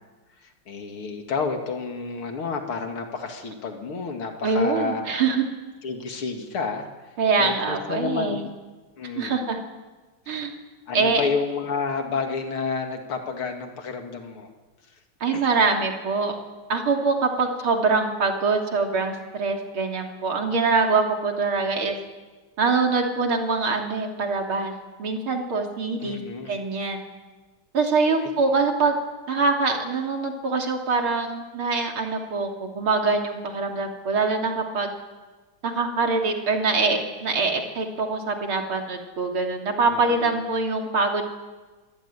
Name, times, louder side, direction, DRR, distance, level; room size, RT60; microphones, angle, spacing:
voice 1, 0.7-5.2 5.8-6.9 7.4-8.4 9.0-9.4 10.9-14.5 15.3-15.4 26.0-26.5 39.9-40.3, left 5 dB, 85° left, 4 dB, 3.2 m, -30 dB
voice 2, 4.4-5.4 7.2-8.4 9.2-9.6 10.3-10.5 10.9-11.3 15.2-16.3 16.7-22.0 22.6-24.7 25.0-26.2 26.5-27.0 27.7-29.0 29.3-34.9 35.6-41.2, right 4 dB, 80° right, 2 dB, 3.9 m, -24 dB
26.5 x 17.0 x 9.9 m, 1.3 s
omnidirectional pair, 2.3 m